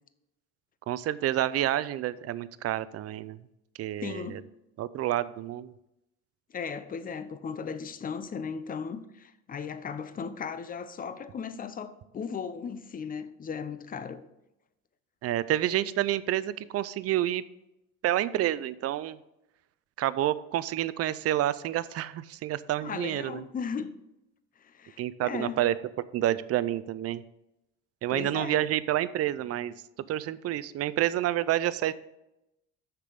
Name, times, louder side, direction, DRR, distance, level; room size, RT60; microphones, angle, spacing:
voice 1, 0.9-3.4 3.8-4.4 4.8-5.7 15.2-17.4 18.0-19.2 20.0-23.4 25.0-25.7 26.1-27.2 28.0-29.8 30.1-31.9, right 13 dB, 45° right, 0.5 m, -29 dB
voice 2, 4.0-4.5 6.5-14.2 22.8-23.9 24.6-25.7 28.1-28.7, left 6 dB, 25° left, 0.6 m, -37 dB
6.7 x 5.9 x 5.1 m
supercardioid pair, 95°, 35 cm